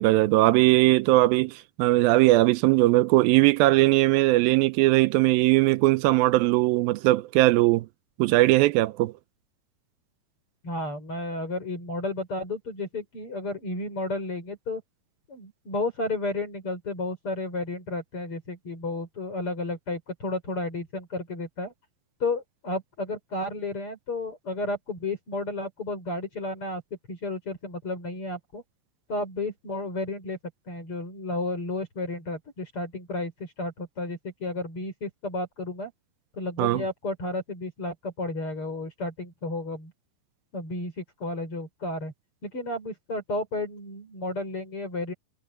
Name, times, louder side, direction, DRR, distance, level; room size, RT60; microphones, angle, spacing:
voice 1, 0.0-7.9 8.2-9.1 36.6-36.8, right 18 dB, 85° right, 2.4 m, -20 dB
voice 2, 10.6-14.8 15.3-21.7 22.2-26.8 27.1-28.6 29.1-30.4 30.7-35.9 36.4-39.9 40.5-42.1 42.4-45.1, left 2 dB, 35° left, 6.4 m, -32 dB
omnidirectional pair, 4.2 m